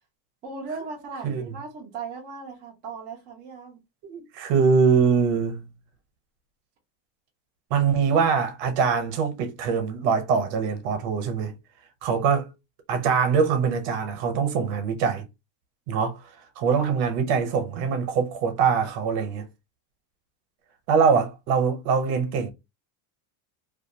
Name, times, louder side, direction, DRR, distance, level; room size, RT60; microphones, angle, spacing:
voice 1, 0.4-3.8, right 4 dB, 20° right, 0.3 m, -37 dB
voice 2, 4.0-5.6 7.7-11.5 12.0-12.5 12.9-15.2 15.9-16.2 16.6-19.5 20.9-22.5, right 6 dB, 75° right, 0.9 m, -23 dB
2.5 x 2.3 x 2.7 m
cardioid pair, 175°, 50 cm